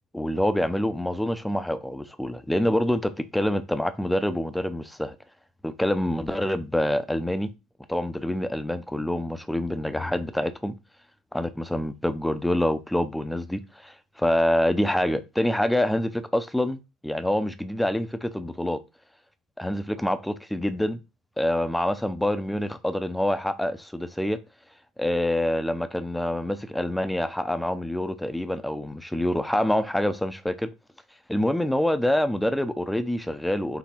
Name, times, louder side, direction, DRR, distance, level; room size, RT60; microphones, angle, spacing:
voice 1, 0.1-5.2 5.6-7.5 7.9-10.7 11.3-18.8 19.6-21.0 21.4-24.4 25.0-30.7 31.3-33.8, left 1 dB, 5° left, 0.7 m, -26 dB
5.9 x 3.9 x 4.4 m
figure-of-eight pair, 60°, 0 cm